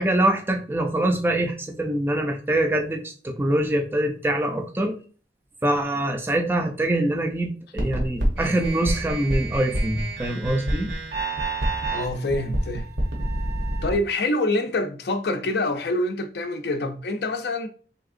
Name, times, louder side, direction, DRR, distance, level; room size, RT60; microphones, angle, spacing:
voice 1, 0.0-5.0 5.6-10.9, right 1 dB, 10° right, 0.4 m, -24 dB
sound 1, 7.8-13.9, right 1 dB, 80° right, 0.9 m, -27 dB
voice 2, 11.9-12.9 13.8-17.7, left 2 dB, 65° left, 0.4 m, -26 dB
3.4 x 2.8 x 2.5 m
head